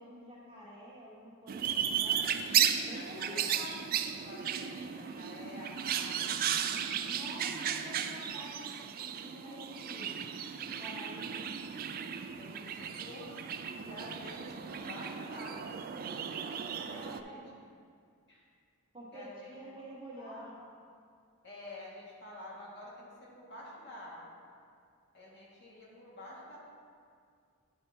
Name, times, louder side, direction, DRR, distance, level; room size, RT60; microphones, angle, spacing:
voice 1, 0.0-2.3 2.8-3.7 7.0-10.3 10.6-11.4 16.9-17.4 18.9-20.6, equal, 25° right, -6 dB, 1.5 m, -48 dB
sound 1, 1.5-17.2, right 8 dB, 40° right, 0.3 m, -35 dB
voice 2, 2.9-3.6 3.9-6.4 11.1-11.6 12.4-13.4 13.8-15.8 16.7-17.4 18.3-18.5 19.1-19.5 20.2-20.7 21.4-24.4 25.1-26.6, left 1 dB, 50° left, -5 dB, 1.7 m, -49 dB
9.8 x 4.3 x 4.1 m, 2.2 s
head